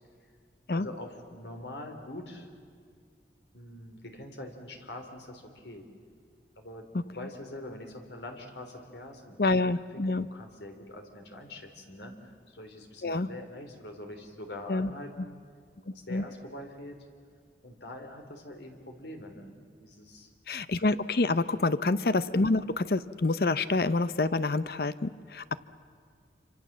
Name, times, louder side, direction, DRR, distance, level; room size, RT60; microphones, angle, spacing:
voice 1, 0.7-2.5 3.5-5.9 6.6-9.4 9.7-15.4 15.9-17.0 17.6-19.5 19.8-20.3, left 1 dB, 75° left, 4 dB, 3.5 m, -44 dB
voice 2, 9.4-10.3 13.0-13.3 14.7-14.9 16.1-16.2 20.5-25.6, left 3 dB, 55° left, 15 dB, 0.6 m, -27 dB
27.5 x 26.0 x 7.4 m, 2.2 s
head